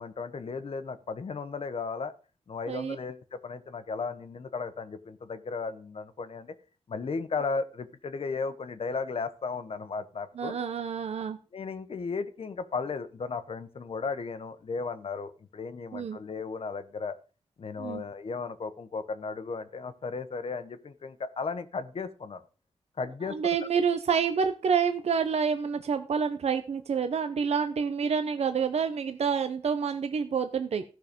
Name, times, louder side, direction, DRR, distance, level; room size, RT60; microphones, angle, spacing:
voice 1, 0.0-2.1 2.5-6.5 6.9-10.6 11.5-17.2 17.6-22.4 23.0-23.5, left 4 dB, 60° left, 11 dB, 1.1 m, -35 dB
voice 2, 10.4-11.4 15.9-16.2 17.8-18.0 23.3-30.8, right 6 dB, 70° right, 8 dB, 0.8 m, -28 dB
15.5 x 5.9 x 5.3 m, 0.36 s
wide cardioid pair, 110°, 11 cm